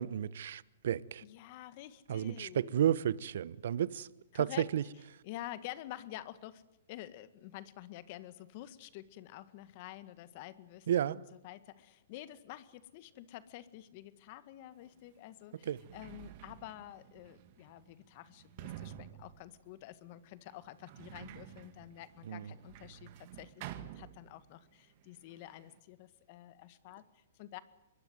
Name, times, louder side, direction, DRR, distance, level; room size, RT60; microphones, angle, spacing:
voice 1, 0.0-1.2 2.1-4.1 4.3-4.8 10.9-11.2 15.6-15.8 22.2-22.5, right 10 dB, 65° right, 1.0 m, -32 dB
voice 2, 1.2-2.7 4.3-4.7 5.2-6.6 6.9-11.1 11.4-27.6, left 14 dB, 45° left, 1.8 m, -49 dB
Sliding door, 14.8-14.9 15.5-24.7 25.0-25.8, right 12 dB, 45° right, 2.0 m, -51 dB
25.0 x 22.0 x 9.6 m
hypercardioid pair, 130°, 0 cm